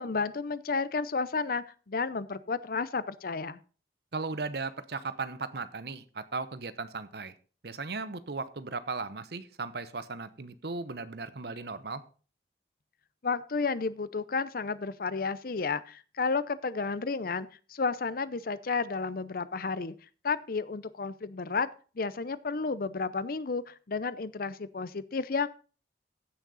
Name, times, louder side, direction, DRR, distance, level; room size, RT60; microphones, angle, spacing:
voice 1, 0.0-3.6 13.2-19.9 20.2-21.7 22.0-25.5, left 4 dB, 55° left, 16 dB, 0.6 m, -32 dB
voice 2, 4.1-7.3 7.6-12.0, right 4 dB, 60° right, 13 dB, 0.9 m, -37 dB
15.5 x 6.4 x 4.1 m, 0.38 s
head